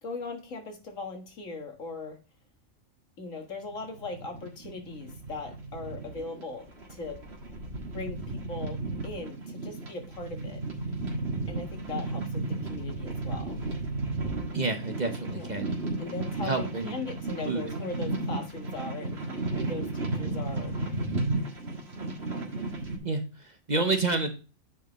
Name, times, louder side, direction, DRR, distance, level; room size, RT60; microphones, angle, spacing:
voice 1, 0.0-2.2 3.2-7.2 7.9-10.6 11.5-13.6 15.3-15.5 16.0-19.2 19.5-20.8, left 3 dB, 70° left, 4 dB, 2.0 m, -39 dB
sound 1, 3.6-23.0, right 2 dB, 50° right, 2.0 m, -34 dB
voice 2, 14.5-15.7 16.4-17.0 17.5-17.6 23.0-24.3, right 3 dB, 35° right, 6 dB, 1.0 m, -29 dB
9.3 x 5.0 x 3.0 m, 0.33 s
omnidirectional pair, 1.4 m